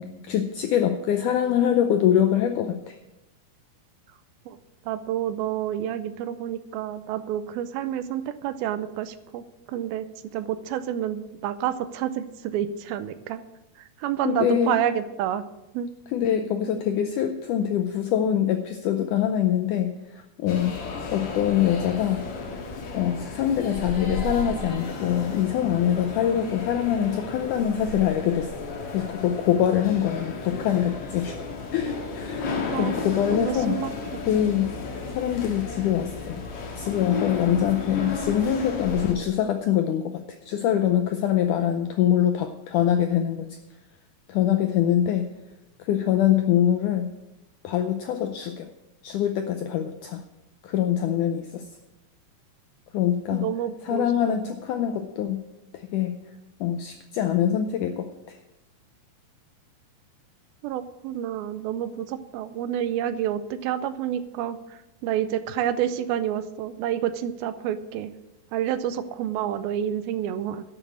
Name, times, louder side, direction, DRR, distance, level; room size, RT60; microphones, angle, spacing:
voice 1, 0.0-3.0 14.3-14.8 16.1-20.7 21.1-22.2 22.9-28.5 28.9-31.4 31.7-33.8 34.3-34.7 35.1-36.4 36.8-43.5 44.3-45.3 45.8-47.1 47.6-48.7 49.0-50.2 50.6-51.7 52.9-53.5 53.8-55.4 55.7-56.2 56.6-58.4, left 10 dB, 80° left, 7 dB, 1.8 m, -24 dB
voice 2, 4.9-10.1 10.3-13.4 14.0-15.4 15.7-15.9 32.7-33.0 33.3-34.2 53.3-54.5 60.6-68.1 68.5-70.6, right 10 dB, 80° right, 12 dB, 2.5 m, -29 dB
sound 1, 20.5-39.1, left 3 dB, 55° left, 2.7 m, -33 dB
11.5 x 6.4 x 8.7 m, 0.96 s
omnidirectional pair, 4.4 m